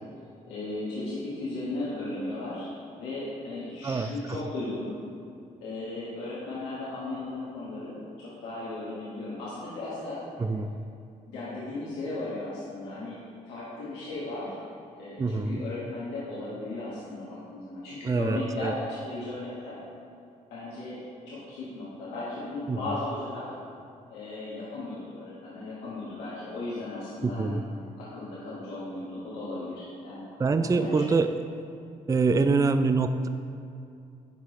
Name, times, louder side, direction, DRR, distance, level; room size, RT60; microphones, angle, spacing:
voice 1, 0.5-2.7 2.9-4.9 5.6-10.2 11.3-14.6 15.0-19.8 20.5-21.0 21.3-23.5 24.1-27.6 28.0-31.0, left 2 dB, 90° left, -9 dB, 1.3 m, -36 dB
voice 2, 10.4-10.7 15.2-15.6 18.0-18.7 22.7-22.8 27.2-27.6 30.4-31.3 32.1-33.3, right 4 dB, 20° right, 9 dB, 0.4 m, -25 dB
10.5 x 4.7 x 3.1 m, 2.6 s
supercardioid pair, 50°, 17 cm